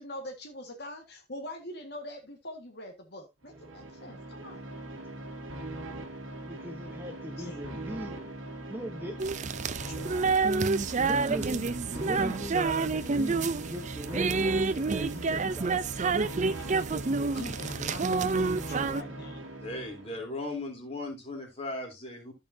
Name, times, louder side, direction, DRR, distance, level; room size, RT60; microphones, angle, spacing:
voice 1, 0.0-4.6 7.4-7.6 9.9-10.2 12.0-12.2 16.5-16.7 17.3-19.4, left 1 dB, 55° left, 1.7 m, -43 dB
sound 1, 3.4-20.3, right 2 dB, 70° right, 1.7 m, -41 dB
voice 2, 6.4-8.3 8.7-9.2 11.0-11.7 11.9-12.6 13.0-15.8, equal, 10° right, 1.0 m, -40 dB
sound 2, 9.2-19.0, right 4 dB, 35° right, 0.5 m, -28 dB
voice 3, 19.6-22.3, left 2 dB, 30° left, 3.5 m, -37 dB
14.5 x 5.6 x 2.7 m
head